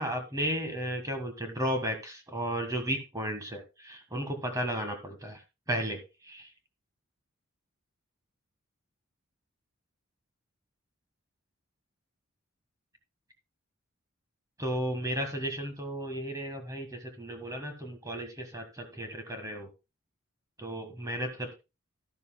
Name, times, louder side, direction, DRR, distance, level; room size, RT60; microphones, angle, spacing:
voice 1, 0.0-5.4 5.7-6.5 14.6-19.7 20.6-21.5, equal, 15° right, 5 dB, 1.5 m, -34 dB
12.5 x 12.0 x 2.2 m, 0.27 s
head